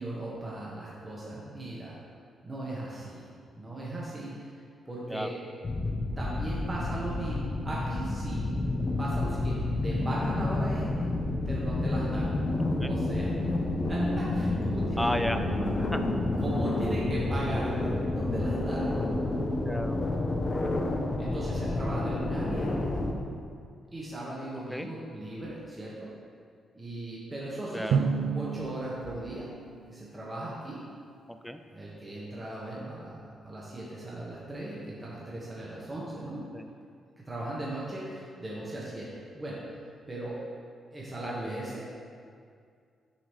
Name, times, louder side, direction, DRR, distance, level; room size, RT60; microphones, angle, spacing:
voice 1, 0.0-2.0 2.4-3.3 3.5-4.5 4.8-5.3 6.2-8.4 9.0-11.1 11.5-12.4 12.9-13.3 13.9-15.1 16.4-19.0 21.2-22.9 23.9-26.1 26.7-29.5 29.9-30.8 31.7-36.5 37.2-39.1 39.3-39.6 40.1-40.4 40.9-41.8, right 1 dB, 30° right, -6 dB, 1.4 m, -37 dB
sound 1, 5.6-23.1, left 2 dB, 40° left, 0.8 m, -29 dB
voice 2, 15.0-16.0 19.7-20.0 24.7-24.9 27.7-28.0 31.3-31.6 36.5-36.7 41.2-41.3, equal, 5° left, 7 dB, 0.4 m, -33 dB
Drum, 27.9-30.6, right 6 dB, 85° right, 0.3 m, -32 dB
7.1 x 5.1 x 3.2 m, 2.2 s
supercardioid pair, 60°, 0 cm